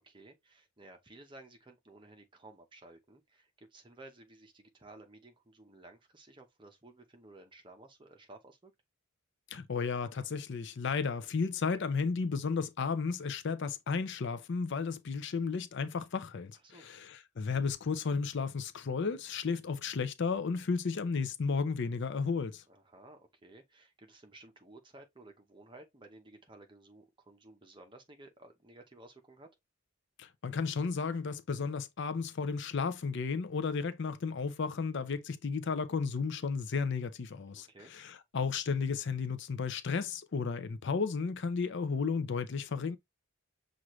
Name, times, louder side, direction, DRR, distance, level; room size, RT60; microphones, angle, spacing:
voice 1, 0.0-8.7 16.6-16.9 22.7-29.6 37.5-37.9, right 2 dB, 20° right, 0.8 m, -55 dB
voice 2, 9.5-22.6 30.2-43.0, left 5 dB, 55° left, 0.5 m, -33 dB
6.1 x 2.5 x 3.1 m
head